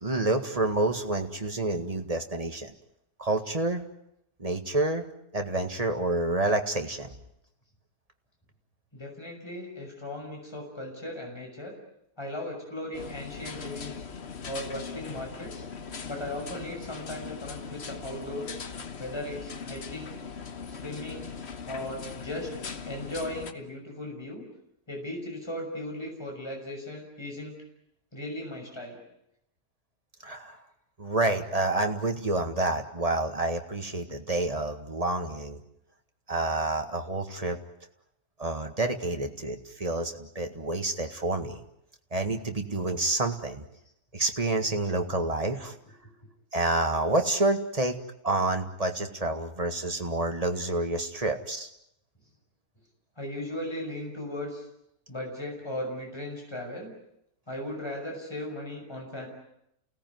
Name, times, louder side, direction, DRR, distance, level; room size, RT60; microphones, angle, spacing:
voice 1, 0.0-2.7 3.2-3.8 4.4-5.0 5.3-7.1 30.2-30.6 31.0-35.6 36.3-37.6 38.4-41.6 42.1-43.6 44.1-45.7 46.5-48.0 48.2-51.7, right 2 dB, 25° right, 5 dB, 1.8 m, -28 dB
voice 2, 8.9-11.7 12.2-14.1 14.4-15.7 16.1-18.6 19.0-20.1 20.7-21.3 21.7-22.5 22.9-24.4 24.9-27.5 28.1-29.0 53.2-54.7 55.1-56.9 57.5-59.3, left 1 dB, 15° left, 1 dB, 6.2 m, -37 dB
sound 1, 12.9-23.5, left 5 dB, 45° left, 1.4 m, -40 dB
29.5 x 18.0 x 9.4 m, 0.80 s
omnidirectional pair, 1.7 m